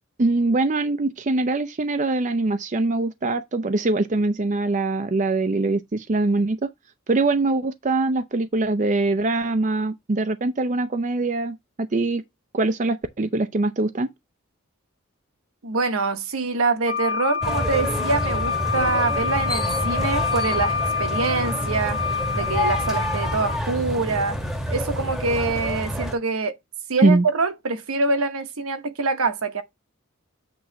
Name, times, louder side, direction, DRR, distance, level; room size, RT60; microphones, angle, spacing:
voice 1, 0.2-6.7 7.1-12.2 12.5-14.1 27.0-27.3, right 2 dB, 35° right, 0.5 m, -23 dB
voice 2, 15.6-22.0 22.3-24.4 24.7-26.6 26.9-29.6, right 3 dB, 75° right, 1.1 m, -25 dB
Wind instrument woodwind instrument, 16.9-23.6, left 6 dB, 45° left, 1.9 m, -27 dB
sound 1, 17.4-26.1, equal, ahead, 1.1 m, -28 dB
8.7 x 3.1 x 5.6 m
head